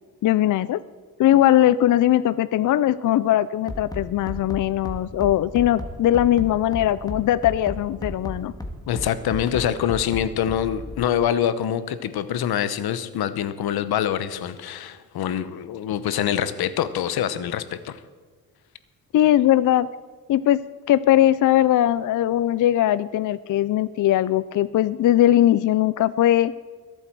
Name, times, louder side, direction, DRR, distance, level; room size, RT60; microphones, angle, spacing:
voice 1, 0.2-0.8 1.2-8.5 19.1-19.9 20.3-26.5, left 12 dB, 55° left, 16 dB, 0.4 m, -20 dB
Bass drum, 3.7-11.1, left 1 dB, 10° left, 1.7 m, -33 dB
voice 2, 8.9-18.0, left 10 dB, 80° left, 13 dB, 0.9 m, -25 dB
22.5 x 7.9 x 4.6 m, 1.5 s
cardioid pair, 95°, 37 cm